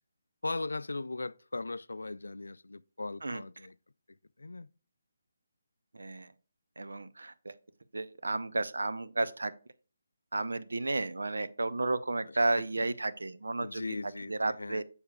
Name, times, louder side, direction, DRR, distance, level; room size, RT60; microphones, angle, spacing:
voice 1, 0.4-3.7 4.4-4.7 12.6-12.9 13.6-14.8, left 3 dB, 80° left, 0.3 m, -38 dB
voice 2, 5.9-6.3 6.8-7.5 7.9-9.5 10.3-14.8, right 2 dB, 80° right, 0.6 m, -32 dB
7.1 x 6.7 x 2.3 m
figure-of-eight pair, 155°, 0 cm